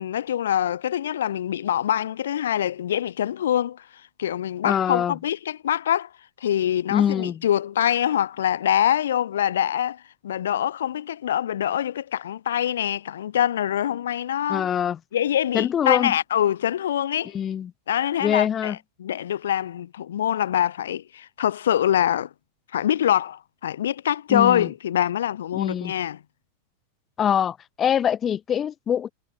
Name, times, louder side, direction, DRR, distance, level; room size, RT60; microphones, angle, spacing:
voice 1, 0.0-3.8 4.2-6.1 6.4-14.7 15.1-17.3 17.9-22.3 22.7-26.2, left 10 dB, 60° left, 5.6 m, -24 dB
voice 2, 4.6-5.2 6.9-7.4 14.5-15.0 15.5-16.1 17.3-17.7 18.2-18.8 24.3-24.7 25.5-25.9 27.2-29.1, left 9 dB, 25° left, 6.9 m, -24 dB
figure-of-eight pair, 90°, 0 cm